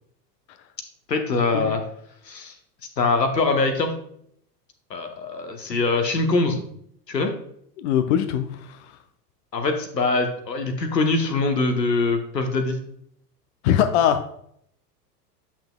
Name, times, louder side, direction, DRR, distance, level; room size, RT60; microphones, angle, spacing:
voice 1, 1.1-1.8 2.3-2.5 3.0-3.9 4.9-6.6 7.1-7.3 9.5-12.8, left 3 dB, 80° left, 5 dB, 1.0 m, -23 dB
voice 2, 7.8-8.8 13.6-14.2, left 9 dB, 45° left, 9 dB, 0.6 m, -21 dB
8.6 x 5.8 x 2.2 m, 0.68 s
figure-of-eight pair, 85°, 49 cm